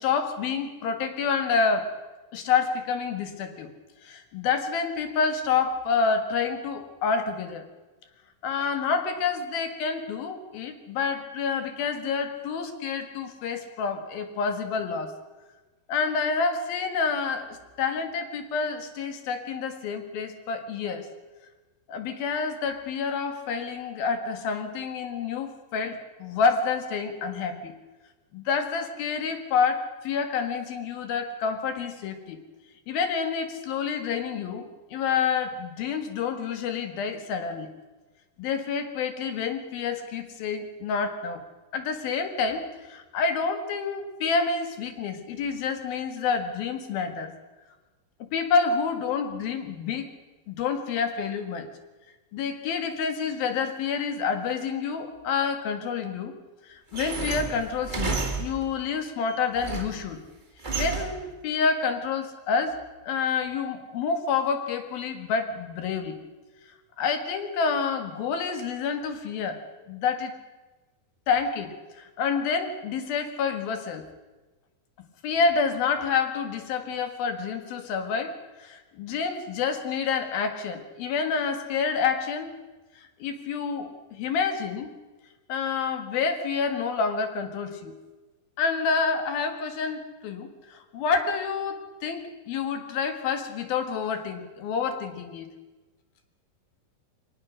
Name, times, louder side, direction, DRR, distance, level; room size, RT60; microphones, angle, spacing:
voice 1, 0.0-1.9 2.3-3.7 4.0-7.6 8.4-15.1 15.9-21.1 21.9-27.7 28.3-32.4 32.9-37.7 38.4-41.4 41.7-47.3 48.3-50.1 50.5-51.7 52.3-56.4 56.7-60.2 60.8-62.8 63.0-66.2 67.0-69.6 69.9-70.3 71.3-74.0 75.2-82.5 83.2-84.9 85.5-87.9 88.6-95.5, left 5 dB, 80° left, 7 dB, 3.6 m, -28 dB
sound 1, 56.9-58.8 59.3-60.1 60.6-61.3, right 5 dB, 20° right, 1.3 m, -31 dB
22.5 x 19.0 x 6.3 m, 1.2 s
omnidirectional pair, 4.2 m